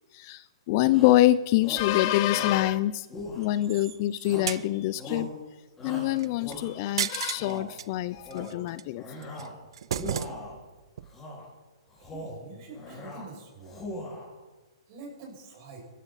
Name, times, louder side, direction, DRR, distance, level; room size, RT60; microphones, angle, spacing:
voice 1, 0.1-3.1 3.4-5.3 5.8-9.0, left 15 dB, 35° left, 16 dB, 0.4 m, -25 dB
Shout, 0.9-1.2 1.6-1.9 2.3-2.6 3.1-3.8 4.2-4.6 4.9-5.3 5.8-6.9 7.3-7.7 8.1-8.6 8.9-9.6 9.9-10.6 11.1-11.5 11.9-12.4 12.7-13.3 13.6-14.3, left 1 dB, 15° left, 4.6 m, -40 dB
sound 1, 3.4-4.6 6.2-6.5 7.0-7.9 8.3-8.8 9.2-10.7 11.0-11.1, right 9 dB, 65° right, 0.6 m, -34 dB
voice 2, 12.0-13.8 14.9-15.8, right 4 dB, 40° right, -1 dB, 6.3 m, -45 dB
23.0 x 13.5 x 4.2 m, 1.2 s
hypercardioid pair, 155°, 3 cm